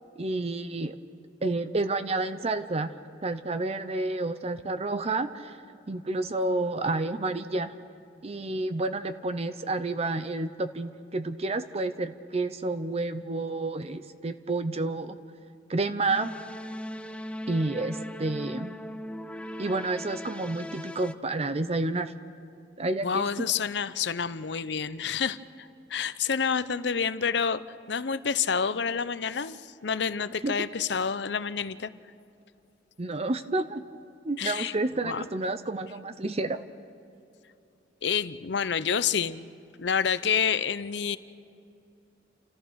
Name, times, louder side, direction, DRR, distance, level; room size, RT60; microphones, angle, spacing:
voice 1, 0.2-0.9 1.4-2.9 3.2-5.6 5.9-7.7 8.2-15.2 15.7-16.3 17.5-18.7 19.6-22.1 22.8-23.2 30.4-30.6 33.0-33.8 34.2-36.6, right 2 dB, 35° right, 11 dB, 0.7 m, -30 dB
sound 1, 16.1-21.1, left 1 dB, 5° left, 0.5 m, -39 dB
voice 2, 23.0-27.6 27.9-31.9 34.4-34.8 35.0-35.3 38.0-39.5 39.8-41.2, left 6 dB, 70° left, 14 dB, 0.7 m, -28 dB
30.0 x 14.5 x 6.3 m, 2.6 s
head